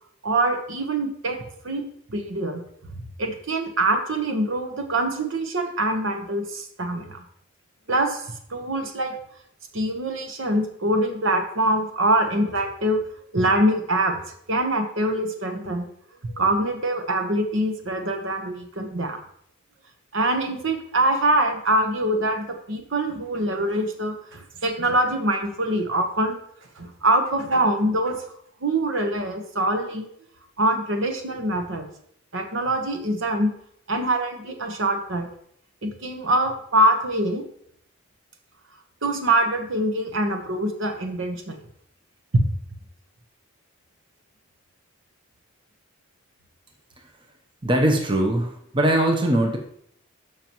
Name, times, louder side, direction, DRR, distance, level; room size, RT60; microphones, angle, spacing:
voice 1, 0.2-1.4 1.6-1.8 2.1-2.6 3.2-7.2 7.9-8.2 8.5-9.1 9.7-13.0 13.3-15.9 16.2-19.2 20.1-26.4 26.8-28.2 28.6-30.1 30.6-31.9 32.3-33.5 33.9-35.3 35.8-37.4 39.0-41.6, right 1 dB, 60° right, 5 dB, 1.1 m, -24 dB
voice 2, 47.6-49.6, right 1 dB, 25° right, 2 dB, 0.9 m, -21 dB
12.5 x 5.8 x 3.0 m, 0.68 s
head